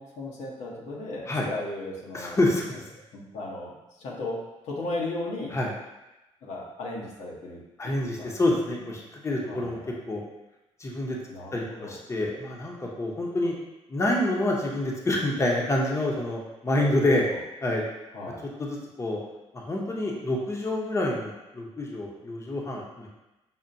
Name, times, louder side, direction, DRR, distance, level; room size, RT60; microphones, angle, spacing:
voice 1, 0.0-2.4 3.1-4.4 4.6-5.5 6.4-8.3 8.8-8.9 9.5-9.9 11.3-11.9 17.3-17.4 18.1-18.4, left 2 dB, 85° left, -4 dB, 0.9 m, -36 dB
voice 2, 2.1-2.6 5.5-5.7 7.8-9.8 10.1-10.2 10.8-11.2 11.5-13.6 13.9-17.2 17.6-17.8 18.6-19.2 19.7-23.1, left 1 dB, 25° left, -2 dB, 0.7 m, -27 dB
5.5 x 2.1 x 2.6 m, 0.99 s
cardioid pair, 85°, 12 cm